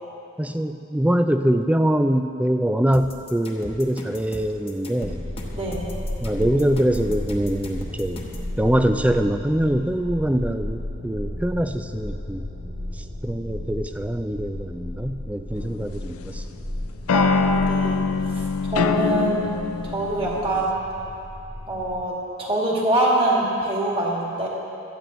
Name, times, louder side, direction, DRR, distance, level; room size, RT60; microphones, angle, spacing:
voice 1, 0.4-5.2 6.2-8.2 8.6-12.4 12.9-16.4, right 1 dB, 5° right, 7 dB, 0.3 m, -23 dB
sound 1, 2.9-8.5, left 1 dB, 25° left, 1.1 m, -38 dB
sound 2, 5.0-22.1, left 1 dB, 60° right, 3.1 m, -34 dB
voice 2, 5.5-5.9 17.1-18.0 18.6-19.5 19.8-20.7 21.7-24.5, right 1 dB, 25° right, -4 dB, 2.0 m, -24 dB
sound 3, 15.6-16.4 17.1-20.7, left 5 dB, 80° left, 0.4 m, -24 dB
17.0 x 13.0 x 3.1 m, 2.8 s
head